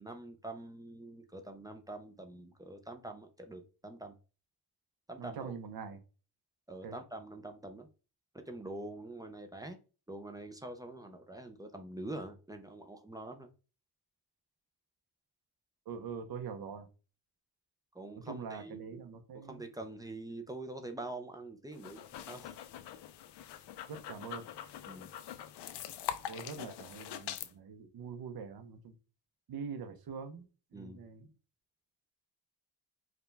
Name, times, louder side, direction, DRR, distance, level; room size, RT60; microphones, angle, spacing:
voice 1, 0.0-4.2 5.1-5.5 6.7-7.9 8.3-9.8 10.1-13.5 17.9-22.5 24.9-25.1 30.7-31.1, right 2 dB, 10° right, 5 dB, 0.3 m, -45 dB
voice 2, 5.2-6.0 6.8-7.0 15.9-16.9 18.2-19.7 23.9-24.4 26.3-29.0 29.5-30.4 30.7-31.3, right 6 dB, 65° right, 7 dB, 0.7 m, -44 dB
sound 1, 21.7-27.5, left 10 dB, 80° left, 0.5 m, -43 dB
4.9 x 2.2 x 3.3 m, 0.34 s
wide cardioid pair, 170°, 40 cm